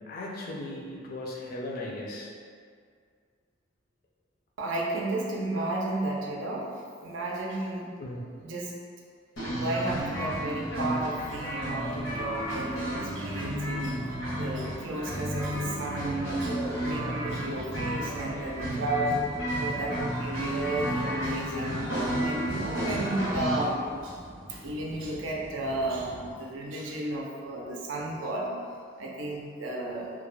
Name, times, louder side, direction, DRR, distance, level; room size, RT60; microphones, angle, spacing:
voice 1, 0.0-2.3 8.0-8.3, left 1 dB, 45° left, -3 dB, 0.4 m, -37 dB
voice 2, 4.6-6.7 7.0-7.9 8.4-8.7 9.5-14.0 14.3-19.2 19.5-21.8 22.2-24.2 24.6-28.5 29.0-30.1, right 1 dB, 70° right, -2 dB, 0.4 m, -33 dB
sound 1, 9.4-23.6, right 1 dB, 85° left, 0.8 m, -32 dB
sound 2, 10.8-26.3, equal, 25° right, 0.7 m, -46 dB
2.3 x 2.0 x 3.1 m, 2.1 s
head